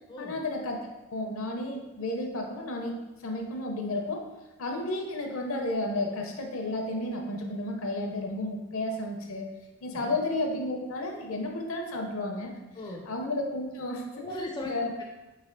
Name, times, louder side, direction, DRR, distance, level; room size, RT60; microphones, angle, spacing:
voice 1, 0.2-4.3 4.6-9.5 9.8-12.5 13.1-14.2 14.6-14.9, left 2 dB, 65° left, 2 dB, 0.6 m, -32 dB
voice 2, 12.8-13.1 14.1-15.0, left 1 dB, 20° left, -1 dB, 0.4 m, -38 dB
3.2 x 3.2 x 3.8 m, 1.1 s
head